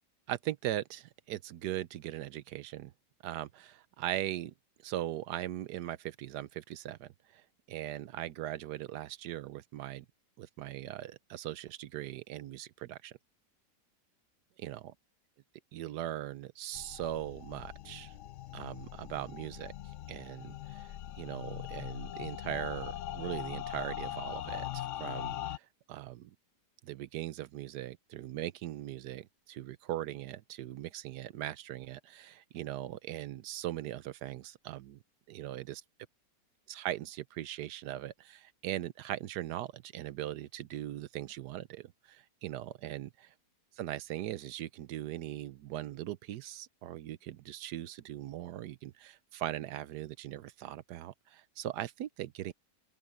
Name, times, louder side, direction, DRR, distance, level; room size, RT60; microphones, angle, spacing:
voice 1, 0.3-2.9 3.2-4.5 4.8-10.0 10.4-13.2 14.6-14.9 15.7-18.2 18.5-19.7 20.1-26.3 26.8-35.0 35.3-35.8 36.7-43.3 43.8-52.5, right 13 dB, 75° right, 1.2 m, -40 dB
sound 1, 16.7-25.6, left 12 dB, 85° left, 0.6 m, -41 dB
open air
omnidirectional pair, 1.9 m